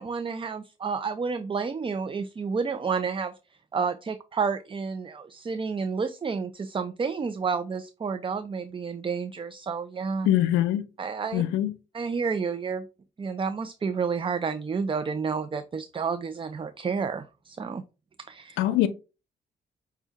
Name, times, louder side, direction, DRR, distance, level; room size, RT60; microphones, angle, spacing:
voice 1, 0.0-3.3 3.7-10.3 11.0-11.4 11.9-12.9 13.2-17.8 18.3-18.6, right 5 dB, 25° right, 0.5 m, -30 dB
voice 2, 10.2-10.8 11.3-11.7 18.6-18.9, left 13 dB, 80° left, 0.5 m, -23 dB
6.0 x 2.3 x 3.4 m
hypercardioid pair, 50°, 20 cm